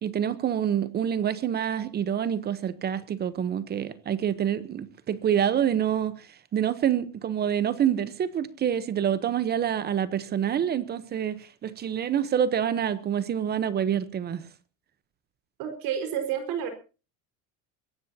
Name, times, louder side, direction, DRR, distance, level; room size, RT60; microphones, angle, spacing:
voice 1, 0.0-14.5, right 9 dB, 25° right, 0.8 m, -27 dB
voice 2, 15.6-16.7, right 8 dB, 60° right, 4.5 m, -30 dB
22.0 x 16.5 x 2.7 m
cardioid pair, 170°, 39 cm